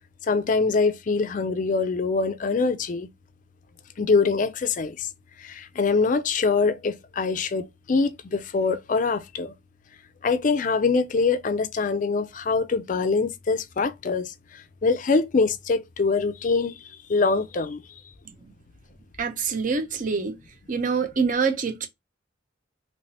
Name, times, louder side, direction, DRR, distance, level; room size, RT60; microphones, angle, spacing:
voice 1, 0.3-3.1 4.0-5.1 5.4-9.5 10.2-16.8 17.1-17.8, left 4 dB, 40° left, 0.4 m, -24 dB
voice 2, 19.2-20.4 20.7-21.9, right 5 dB, 45° right, 0.6 m, -25 dB
3.2 x 2.9 x 2.8 m
head